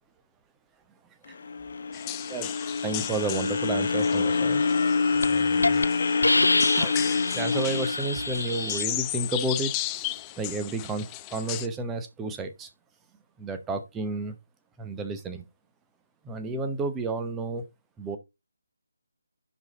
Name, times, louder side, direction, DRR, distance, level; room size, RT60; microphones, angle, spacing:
sound 1, 1.3-9.5, left 4 dB, 45° left, 1.2 m, -27 dB
sound 2, 1.9-11.7, left 15 dB, 15° left, 0.4 m, -36 dB
voice 1, 2.3-4.6 5.1-5.8 6.7-7.1 7.3-12.7 13.4-14.4 14.8-15.4 16.2-17.7 18.0-18.2, right 3 dB, 10° right, 0.8 m, -32 dB
Hiss, 4.6-4.8 5.2-5.3 5.6-5.9 6.2-8.8, left 2 dB, 65° left, 0.6 m, -26 dB
10.5 x 4.0 x 4.0 m
figure-of-eight pair, 150°, 0 cm